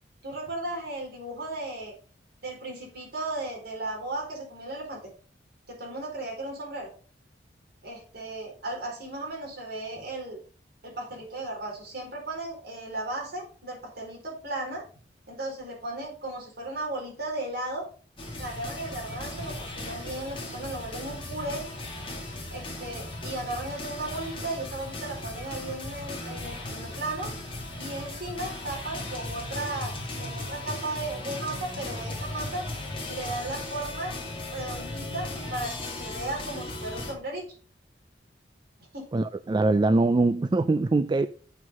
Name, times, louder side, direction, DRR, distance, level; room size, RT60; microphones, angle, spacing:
voice 1, 0.2-1.9 2.4-5.1 5.7-6.9 7.8-10.4 10.8-14.8 15.3-17.8 18.4-21.6 22.5-27.3 27.8-32.6 33.1-34.1 34.5-37.4 38.9-39.1, right 2 dB, 60° right, 4.4 m, -35 dB
sound 1, 18.2-37.1, left 2 dB, 30° left, 2.4 m, -37 dB
voice 2, 39.1-41.3, right 3 dB, 25° right, 0.3 m, -23 dB
7.3 x 6.3 x 5.2 m
head